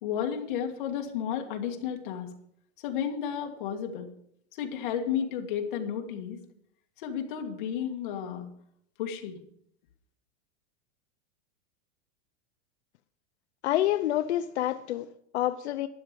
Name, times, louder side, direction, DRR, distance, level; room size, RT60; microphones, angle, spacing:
voice 1, 0.0-2.3 2.8-4.1 4.6-6.4 7.0-8.5 9.0-9.4, left 8 dB, 50° left, 2.0 m, -32 dB
voice 2, 13.6-15.9, left 13 dB, 85° left, 0.7 m, -28 dB
12.5 x 9.0 x 5.2 m
supercardioid pair, 175°, 33 cm